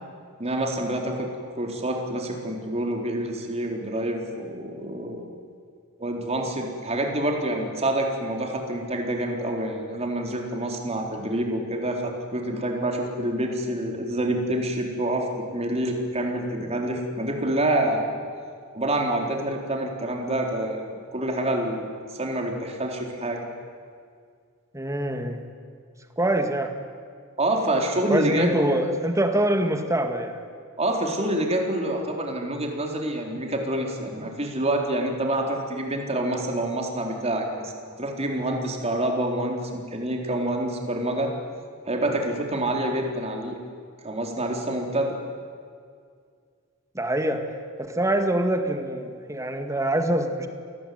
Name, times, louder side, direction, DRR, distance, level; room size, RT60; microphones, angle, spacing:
voice 1, 0.4-1.3 1.5-5.3 6.0-15.3 15.5-18.1 18.7-23.4 27.4-28.5 30.8-37.7 38.0-41.3 41.9-43.6 44.0-45.2, right 1 dB, 30° right, 2 dB, 4.0 m, -27 dB
voice 2, 24.7-25.4 26.2-26.7 28.1-30.4 46.9-47.5 47.9-50.5, right 1 dB, 15° right, 6 dB, 2.2 m, -24 dB
27.5 x 20.0 x 9.5 m, 2.1 s
head